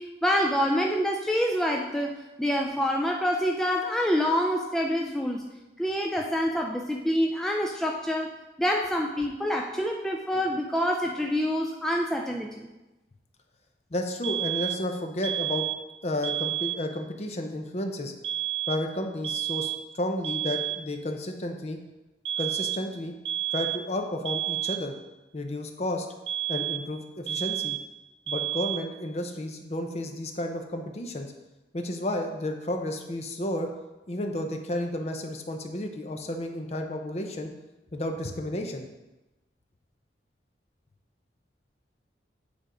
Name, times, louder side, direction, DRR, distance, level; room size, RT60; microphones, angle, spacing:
voice 1, 0.0-5.5 5.8-8.3 8.6-12.7, equal, ahead, 0 dB, 0.4 m, -27 dB
voice 2, 13.9-15.6 16.0-18.1 18.7-21.8 22.4-23.1 23.5-24.9 25.3-26.1 26.5-27.8 28.3-31.3 31.7-33.7 34.1-37.5 37.9-38.9, left 1 dB, 35° left, 4 dB, 0.7 m, -32 dB
sound 1, 14.2-14.9 15.2-15.9 16.2-16.9 18.2-18.9 19.2-19.9 20.2-20.9 22.3-22.9 23.3-23.9 24.3-24.9 26.3-26.9 27.3-27.9 28.3-28.9, right 12 dB, 80° right, 0.4 m, -31 dB
9.0 x 3.4 x 5.0 m, 1.0 s
head